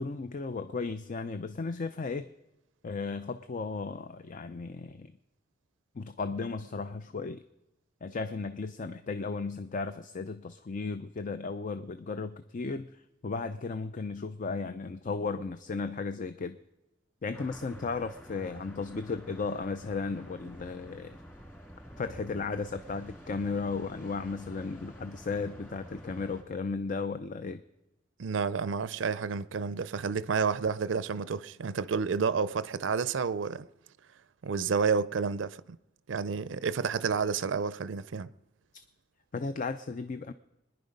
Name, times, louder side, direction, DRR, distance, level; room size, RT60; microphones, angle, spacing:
voice 1, 0.0-2.3 2.8-5.1 6.0-7.4 8.0-12.9 13.2-16.6 17.2-21.2 22.0-27.6 39.3-40.3, left 4 dB, 45° left, 0.5 m, -35 dB
sound 1, 17.3-26.4, equal, 10° left, 2.2 m, -48 dB
voice 2, 28.2-33.7 34.4-35.6 36.1-38.3, right 5 dB, 75° right, 0.5 m, -30 dB
25.0 x 10.5 x 5.3 m
head